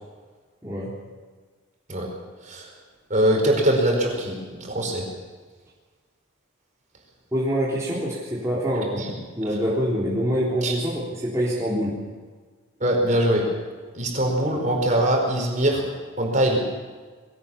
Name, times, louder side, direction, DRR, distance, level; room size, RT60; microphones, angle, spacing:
voice 1, 0.6-1.0 7.3-9.1 9.4-12.0, equal, 15° right, -7 dB, 3.7 m, -25 dB
voice 2, 3.1-5.0 9.0-9.1 10.6-10.7 12.8-13.4 13.9-15.8 16.2-16.6, right 1 dB, 35° right, 1 dB, 5.0 m, -22 dB
22.0 x 17.5 x 7.1 m, 1.5 s
head